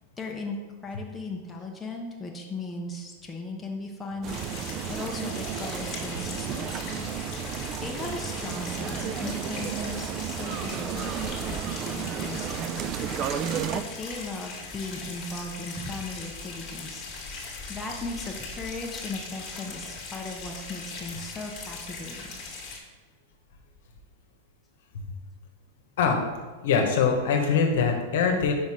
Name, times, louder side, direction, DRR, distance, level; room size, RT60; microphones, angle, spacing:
voice 1, 0.2-0.6 0.8-7.1 7.4-11.6 11.8-12.9 13.7-17.1 17.7-22.3, left 2 dB, 10° left, -1 dB, 0.8 m, -37 dB
sound 1, 4.2-13.8, right 9 dB, 35° right, 0.3 m, -33 dB
sound 2, 4.3-22.8, left 4 dB, 35° left, 1.5 m, -39 dB
voice 2, 26.6-28.5, left 5 dB, 70° left, 3 dB, 1.0 m, -23 dB
5.1 x 4.1 x 4.8 m, 1.3 s
hypercardioid pair, 135°, 0 cm